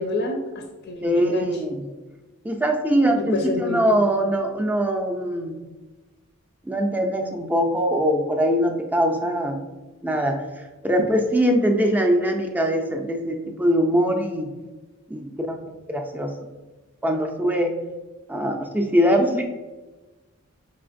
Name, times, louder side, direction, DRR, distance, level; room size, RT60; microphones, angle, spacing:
voice 1, 0.0-1.5 3.2-3.8, left 2 dB, 50° left, 3 dB, 0.4 m, -28 dB
voice 2, 1.0-1.9 2.4-5.6 6.7-9.6 10.0-14.5 15.1-15.6 15.9-16.3 17.0-17.7 18.3-19.5, equal, 10° right, 4 dB, 0.3 m, -22 dB
4.9 x 3.1 x 2.5 m, 1.2 s
head